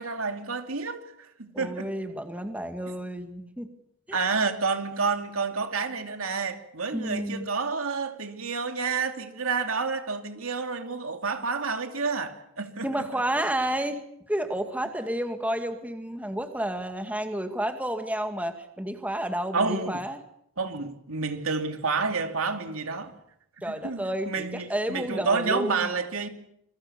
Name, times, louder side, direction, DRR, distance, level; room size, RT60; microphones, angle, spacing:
voice 1, 0.0-1.9 4.1-12.9 19.5-20.0 20.6-23.1 23.7-26.3, right 4 dB, 85° right, 2.7 m, -29 dB
voice 2, 1.5-3.7 4.1-4.3 6.9-7.5 12.8-20.2 23.6-25.8, right 1 dB, 5° right, 2.2 m, -31 dB
27.5 x 23.0 x 7.1 m
head